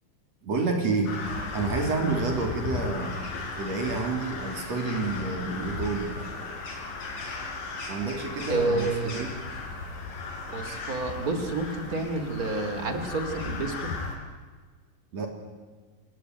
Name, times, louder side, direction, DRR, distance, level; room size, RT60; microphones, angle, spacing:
voice 1, 0.4-1.2 1.5-3.2 3.6-6.1 7.9-9.4 15.1-15.3, right 3 dB, 50° right, 3 dB, 4.0 m, -29 dB
Crow, 1.1-14.2, left 3 dB, 70° left, 6.4 m, -36 dB
voice 2, 8.5-9.3 10.5-13.9, right 2 dB, 25° right, 7 dB, 3.0 m, -29 dB
28.0 x 19.0 x 9.2 m, 1.5 s
omnidirectional pair, 4.0 m